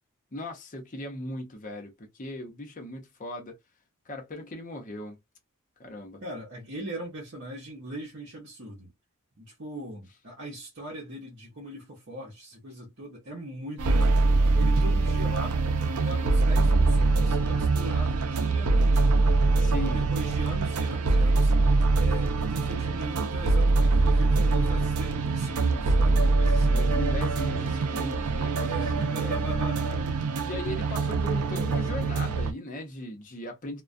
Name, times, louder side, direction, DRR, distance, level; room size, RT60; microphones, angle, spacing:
voice 1, 0.3-3.6 4.1-5.2 5.8-6.2 15.3-15.4 19.6-20.1 26.7-29.8 30.4-33.8, left 1 dB, 35° left, 0.7 m, -38 dB
voice 2, 6.2-8.9 9.4-15.6 16.0-19.2 19.9-21.5 21.9-26.8 28.6-30.1, right 1 dB, 55° right, 0.8 m, -40 dB
sound 1, 13.8-32.5, right 3 dB, 90° right, 0.5 m, -23 dB
2.3 x 2.2 x 2.5 m
head